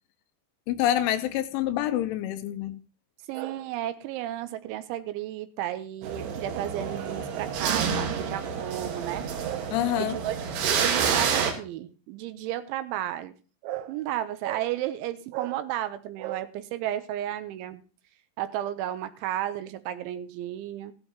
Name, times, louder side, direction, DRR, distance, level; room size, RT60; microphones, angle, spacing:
voice 1, 0.7-2.8 9.7-10.2, left 12 dB, 90° left, 3.3 m, -27 dB
voice 2, 3.3-10.4 10.8-13.3 13.6-17.8 18.4-20.9, right 12 dB, 85° right, 3.1 m, -33 dB
sound 1, 6.0-11.5, right 6 dB, 65° right, 3.4 m, -28 dB
15.5 x 12.0 x 2.9 m
omnidirectional pair, 5.5 m